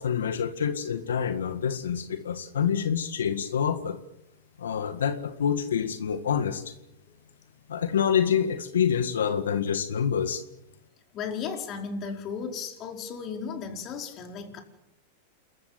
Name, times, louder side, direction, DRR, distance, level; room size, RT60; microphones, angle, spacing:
voice 1, 0.0-4.0 4.6-6.7 7.7-10.4, left 8 dB, 90° left, 8 dB, 1.8 m, -27 dB
voice 2, 11.1-14.6, left 6 dB, 40° left, 4 dB, 4.9 m, -35 dB
28.5 x 15.0 x 9.1 m, 0.87 s
hypercardioid pair, 120°, 0 cm